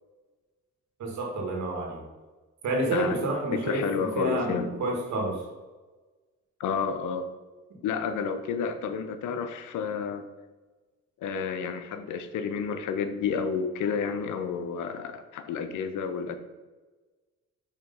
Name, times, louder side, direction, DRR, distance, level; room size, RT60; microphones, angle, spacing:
voice 1, 1.0-2.0 2.6-3.8 4.1-5.4, right 1 dB, 70° right, 0 dB, 1.8 m, -29 dB
voice 2, 2.9-4.7 6.6-7.3 7.8-10.2 11.2-16.4, left 6 dB, 80° left, 9 dB, 0.7 m, -30 dB
5.0 x 3.6 x 5.4 m, 1.3 s
cardioid pair, 90°, 30 cm